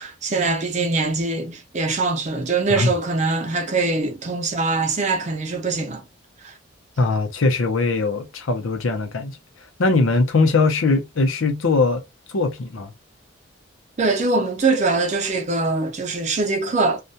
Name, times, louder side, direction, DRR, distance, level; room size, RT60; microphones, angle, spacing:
voice 1, 0.0-6.0 6.4-6.5 14.0-17.0, right 3 dB, 35° right, 0.6 m, -23 dB
voice 2, 7.0-9.4 9.8-12.0 12.3-12.9, left 3 dB, 90° left, 0.7 m, -20 dB
2.4 x 2.1 x 2.7 m
head